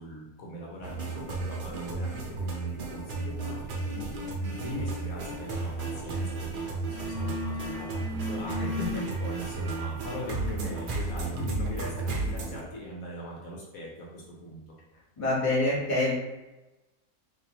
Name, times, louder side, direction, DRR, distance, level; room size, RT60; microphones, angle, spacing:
voice 1, 0.0-3.6 3.9-8.9 9.2-14.7, equal, 70° left, -3 dB, 1.3 m, -40 dB
sound 1, 0.8-12.6, right 3 dB, 55° right, 0.6 m, -33 dB
sound 2, 6.2-6.4 6.7-13.3, left 3 dB, 70° right, 1.0 m, -40 dB
voice 2, 15.2-16.1, left 2 dB, 25° left, -6 dB, 1.1 m, -25 dB
4.2 x 3.1 x 2.9 m, 1.1 s
omnidirectional pair, 1.6 m